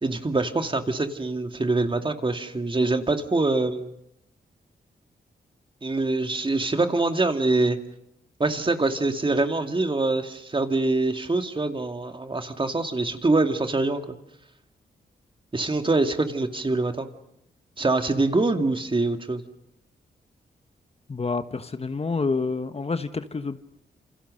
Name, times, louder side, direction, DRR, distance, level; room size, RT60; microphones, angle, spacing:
voice 1, 0.0-3.9 5.8-7.8 8.4-14.0 15.5-17.1 17.8-19.4, right 2 dB, 30° right, 6 dB, 2.4 m, -24 dB
voice 2, 21.1-23.6, left 4 dB, 35° left, 10 dB, 1.3 m, -28 dB
28.0 x 27.0 x 6.6 m, 0.80 s
cardioid pair, 75°, 17 cm